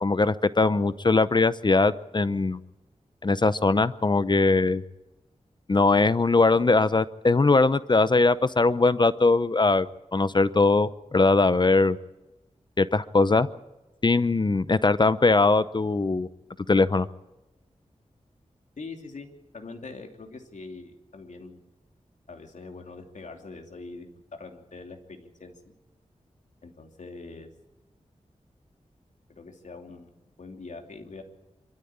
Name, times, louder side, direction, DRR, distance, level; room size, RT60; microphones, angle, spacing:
voice 1, 0.0-2.6 3.2-4.8 5.7-9.9 10.1-12.0 12.8-13.5 14.0-16.3 16.7-17.1, left 3 dB, 35° left, 15 dB, 0.7 m, -21 dB
voice 2, 18.8-21.6 22.3-25.7 26.6-27.5 29.3-30.1 30.4-31.2, left 3 dB, 75° left, 4 dB, 2.9 m, -43 dB
25.0 x 13.5 x 8.8 m, 1.0 s
wide cardioid pair, 75°, 13 cm